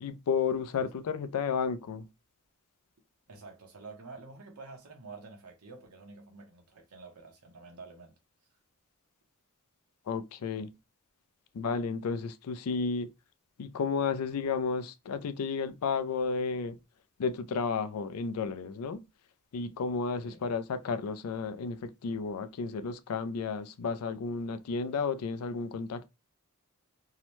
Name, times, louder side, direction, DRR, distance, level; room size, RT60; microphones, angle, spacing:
voice 1, 0.0-2.1 10.1-10.7 11.5-13.1 13.6-16.8 17.2-19.0 19.5-26.1, left 5 dB, 85° left, 0.4 m, -32 dB
voice 2, 3.3-8.1 20.2-20.4, right 3 dB, 90° right, 0.8 m, -49 dB
2.7 x 2.1 x 3.0 m
head